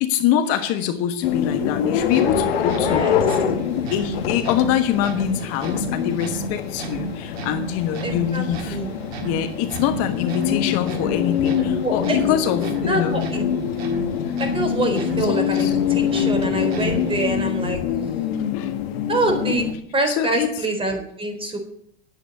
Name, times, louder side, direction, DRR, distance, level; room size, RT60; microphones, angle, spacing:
voice 1, 0.0-3.1 3.9-8.8 9.2-13.1 15.3-15.7 18.5-18.8 19.5-19.6 20.1-20.5, left 10 dB, 50° left, 8 dB, 1.3 m, -24 dB
sound 1, 1.2-19.7, left 9 dB, 75° left, 1.7 m, -25 dB
sound 2, 2.0-17.3, right 4 dB, 85° right, 2.2 m, -33 dB
voice 2, 2.7-3.4 8.0-8.9 11.5-12.2 12.9-13.4 14.4-17.8 19.1-19.7 19.9-21.6, right 2 dB, 15° right, 5 dB, 4.1 m, -25 dB
10.0 x 8.5 x 9.6 m, 0.73 s
hypercardioid pair, 105°, 30 cm